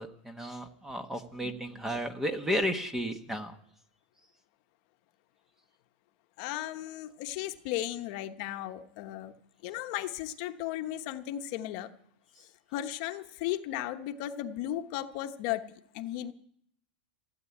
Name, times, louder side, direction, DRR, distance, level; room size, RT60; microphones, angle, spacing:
voice 1, 0.0-3.6, equal, 5° right, 9 dB, 1.2 m, -33 dB
voice 2, 6.4-9.3 9.6-11.9 12.7-15.7 15.9-16.3, left 13 dB, 50° left, 7 dB, 1.1 m, -35 dB
16.0 x 8.4 x 9.8 m, 0.70 s
supercardioid pair, 145°, 5 cm